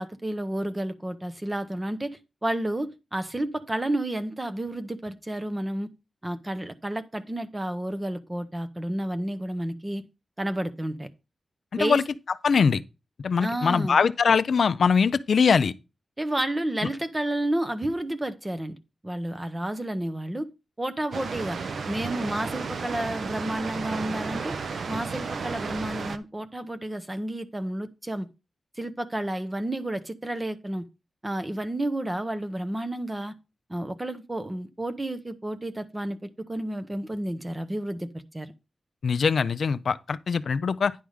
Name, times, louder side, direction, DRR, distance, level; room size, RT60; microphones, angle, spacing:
voice 1, 0.0-5.9 6.2-10.0 10.4-11.1 11.8-12.0 13.4-14.0 16.2-18.8 19.0-20.5 20.8-21.6 21.9-24.5 24.9-28.3 28.8-30.8 31.2-33.3 33.7-38.5, right 1 dB, 15° right, 0.8 m, -31 dB
voice 2, 12.4-12.8 13.2-15.7 39.0-40.9, left 5 dB, 60° left, 0.5 m, -22 dB
Water, 21.1-26.2, right 5 dB, 65° right, 0.6 m, -33 dB
10.0 x 3.5 x 6.4 m
wide cardioid pair, 165°, 0 cm